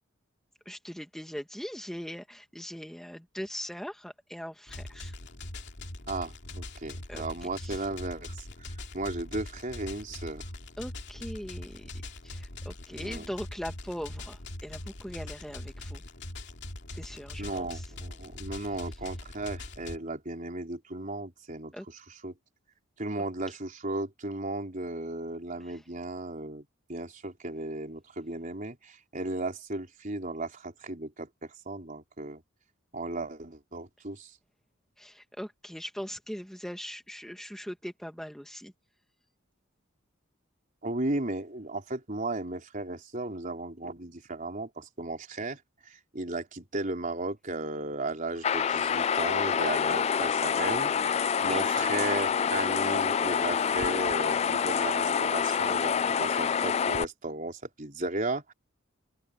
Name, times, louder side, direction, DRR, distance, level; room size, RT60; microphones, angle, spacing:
voice 1, 0.6-5.2 7.1-7.2 7.6-7.8 10.8-11.9 12.2-16.0 16.9-17.9 21.7-21.8 25.6-25.8 35.0-38.7 51.4-52.1, equal, ahead, 1.5 m, -40 dB
sound 1, 4.7-20.0, left 2 dB, 55° left, 2.7 m, -42 dB
voice 2, 6.1-10.4 12.9-13.3 17.4-21.7 22.2-22.3 23.0-32.4 32.9-34.4 40.8-58.5, right 2 dB, 40° right, 4.2 m, -35 dB
sound 2, 48.4-57.0, left 7 dB, 30° left, 0.3 m, -27 dB
open air
head